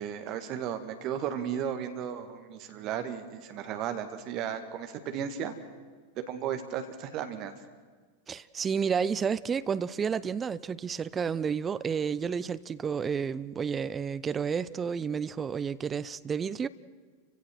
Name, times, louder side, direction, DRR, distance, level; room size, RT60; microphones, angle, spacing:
voice 1, 0.0-5.5 6.3-7.5, right 9 dB, 40° right, 1.8 m, -35 dB
voice 2, 8.3-16.7, right 6 dB, 20° right, 0.6 m, -31 dB
29.5 x 16.5 x 6.2 m
figure-of-eight pair, 90°, 0 cm